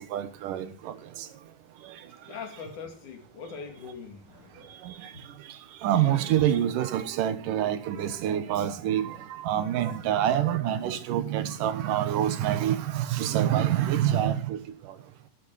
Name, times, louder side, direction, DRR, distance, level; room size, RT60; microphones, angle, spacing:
voice 1, 0.1-0.9 4.9-5.0 5.8-9.2 9.4-14.6, right 11 dB, 90° right, 2.8 m, -26 dB
voice 2, 2.2-4.8 5.1-5.3 13.9-14.4, left 6 dB, 70° left, 3.8 m, -42 dB
13.0 x 12.5 x 4.7 m
omnidirectional pair, 3.7 m